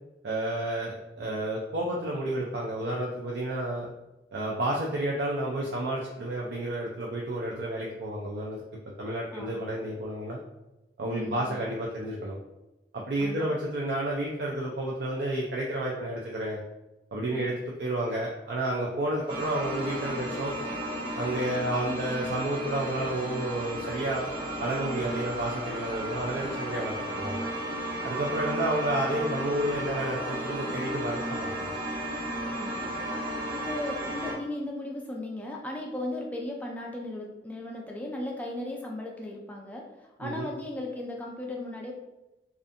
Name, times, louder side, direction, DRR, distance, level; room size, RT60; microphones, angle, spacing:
voice 1, 0.2-3.9 4.3-8.6 9.0-10.4 11.0-12.4 12.9-16.6 17.1-17.5 17.8-20.6 21.1-24.2 24.6-27.5 28.0-31.7 40.2-40.5, right 1 dB, 65° right, -3 dB, 0.4 m, -31 dB
voice 2, 9.3-9.7 11.1-11.7 13.2-13.5 17.3-17.5 28.2-28.3 32.6-33.1 33.5-41.9, left 1 dB, 10° left, -1 dB, 0.3 m, -37 dB
sound 1, 19.3-34.3, right 1 dB, 30° right, 0.6 m, -34 dB
2.5 x 2.4 x 2.5 m, 0.99 s
head